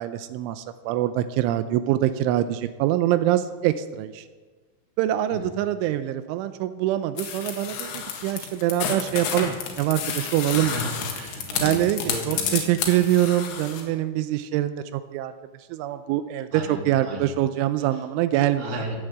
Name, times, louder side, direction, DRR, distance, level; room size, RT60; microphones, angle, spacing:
voice 1, 0.0-4.3 5.0-10.8 11.6-15.3 15.7-18.7, right 13 dB, 85° right, 11 dB, 3.0 m, -24 dB
sound 1, 7.2-13.8, left 7 dB, 85° left, 4.4 m, -30 dB
voice 2, 10.5-12.7 16.5-17.3 17.9-18.0 18.6-19.0, right 1 dB, 20° right, -1 dB, 2.1 m, -34 dB
16.0 x 8.8 x 8.1 m, 1.3 s
omnidirectional pair, 5.6 m